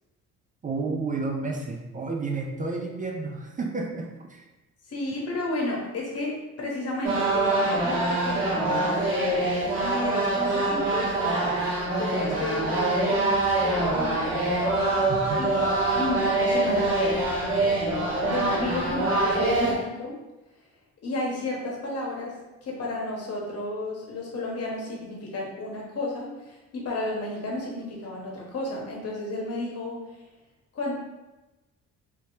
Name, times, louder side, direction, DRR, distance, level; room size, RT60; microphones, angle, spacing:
voice 1, 0.6-4.4 15.1-15.5, right 3 dB, 25° right, 1 dB, 0.4 m, -31 dB
voice 2, 4.8-9.2 9.8-11.6 12.0-14.8 15.3-15.6 15.9-17.2 18.2-20.2 20.5-20.7 21.0-30.2 30.7-30.9, left 2 dB, 55° left, -3 dB, 1.1 m, -32 dB
sound 1, 7.0-19.7, right 2 dB, 50° right, 1.4 m, -25 dB
3.4 x 3.0 x 2.8 m, 1.1 s
cardioid pair, 90°, 30 cm